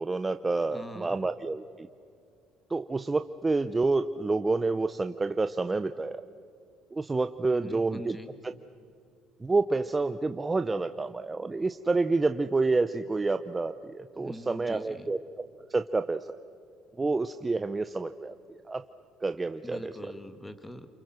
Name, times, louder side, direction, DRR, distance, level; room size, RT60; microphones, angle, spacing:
voice 1, 0.0-1.9 2.7-6.2 6.9-8.2 9.4-15.2 15.7-16.4 17.0-18.3 18.7-18.8 19.2-19.9, right 3 dB, 20° right, 9 dB, 0.7 m, -28 dB
voice 2, 0.7-1.2 7.5-8.4 14.2-15.1 19.6-20.9, left 1 dB, 10° left, 9 dB, 2.1 m, -43 dB
28.0 x 24.0 x 6.2 m, 2.4 s
supercardioid pair, 90°, 0 cm